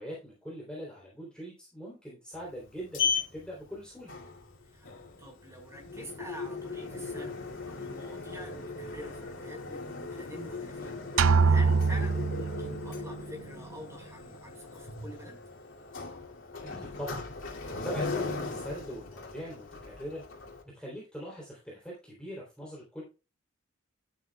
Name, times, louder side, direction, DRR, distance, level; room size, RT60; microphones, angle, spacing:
voice 1, 0.0-4.1 16.6-20.2 20.7-23.0, equal, 5° left, -4 dB, 3.3 m, -42 dB
Sliding door, 2.3-20.6, left 4 dB, 75° left, 2.5 m, -38 dB
voice 2, 5.2-7.3 7.7-15.4, equal, 15° right, 1 dB, 5.0 m, -47 dB
sound 1, 11.2-13.0, right 5 dB, 80° right, 0.4 m, -24 dB
11.0 x 9.1 x 2.3 m, 0.30 s
head